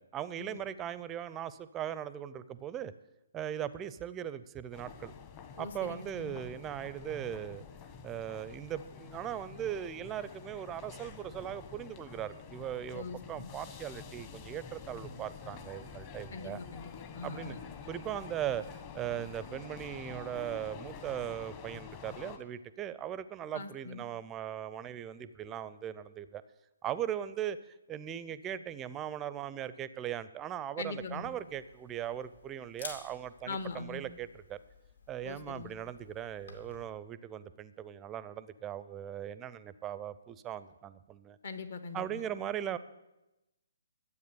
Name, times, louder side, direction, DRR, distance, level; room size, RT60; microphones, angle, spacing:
voice 1, 0.0-2.9 3.3-5.1 5.6-7.6 8.0-16.6 17.2-17.6 17.9-26.4 26.8-27.6 27.9-34.6 35.1-41.4 41.9-42.8, right 10 dB, 15° right, 15 dB, 0.5 m, -39 dB
sound 1, 4.7-22.4, left 6 dB, 30° left, 1.2 m, -48 dB
voice 2, 5.6-6.4 12.9-13.5 16.3-17.6 23.5-24.0 30.8-31.3 33.5-34.0 35.2-35.7 41.4-42.2, left 4 dB, 55° left, 9 dB, 1.3 m, -42 dB
Camera, 31.0-36.8, left 3 dB, 70° left, 2.7 m, -52 dB
12.0 x 8.2 x 6.9 m, 0.99 s
figure-of-eight pair, 140°, 0 cm